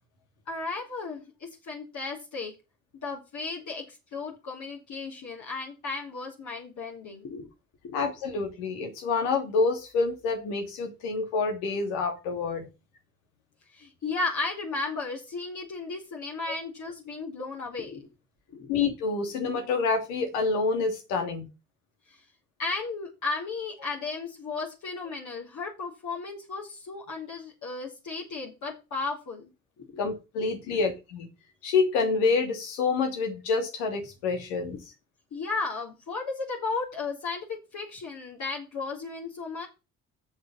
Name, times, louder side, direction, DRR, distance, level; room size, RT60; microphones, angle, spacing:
voice 1, 0.5-2.5 3.0-7.5 7.8-8.0 13.7-18.1 18.5-18.7 22.1-22.2 22.6-29.5 29.8-30.0 30.7-30.8 35.3-39.7, left 3 dB, 55° left, -3 dB, 3.8 m, -35 dB
voice 2, 7.9-12.7 18.7-21.5 30.0-31.3 31.6-34.8, left 4 dB, 80° left, 4 dB, 3.0 m, -27 dB
7.8 x 6.9 x 7.4 m, 0.27 s
hypercardioid pair, 55°, 36 cm